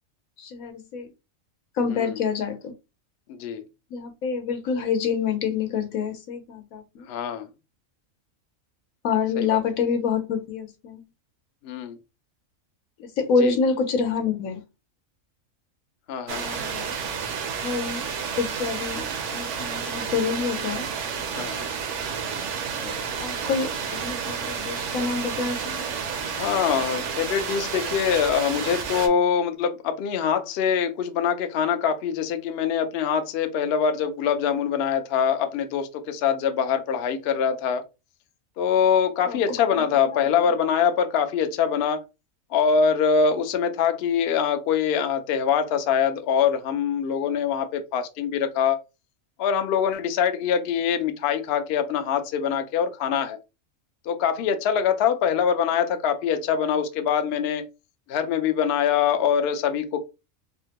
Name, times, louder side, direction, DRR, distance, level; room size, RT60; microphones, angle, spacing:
voice 1, 0.4-1.1 1.8-2.7 3.9-7.1 9.0-11.0 13.0-14.6 16.3-16.9 17.6-18.1 18.4-19.1 19.3-20.9 22.8-25.9 39.2-39.4 39.7-40.5, left 5 dB, 85° left, 1.2 m, -27 dB
voice 2, 3.3-3.6 7.1-7.5 9.4-9.6 11.6-12.0 13.4-13.6 16.1-16.5 21.3-21.7 26.2-37.8 38.6-42.0 42.5-48.8 49.4-53.4 54.1-57.6 58.1-60.0, left 7 dB, 65° left, 0.6 m, -24 dB
sound 1, 16.3-29.1, right 6 dB, 65° right, 0.9 m, -31 dB
3.5 x 2.1 x 2.8 m
omnidirectional pair, 1.4 m